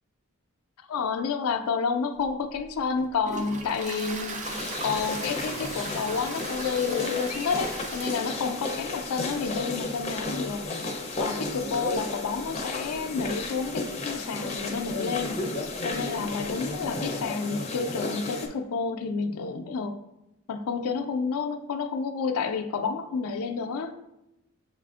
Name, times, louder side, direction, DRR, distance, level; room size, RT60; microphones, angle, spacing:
voice 1, 0.9-10.6 11.2-15.4 15.8-20.0 20.5-23.9, left 5 dB, 80° left, 7 dB, 0.4 m, -30 dB
Toilet flush, 2.2-17.0, right 3 dB, 35° right, 0.4 m, -41 dB
sound 1, 4.4-18.5, left 2 dB, 30° left, 0.5 m, -33 dB
7.2 x 2.5 x 2.4 m, 0.91 s
head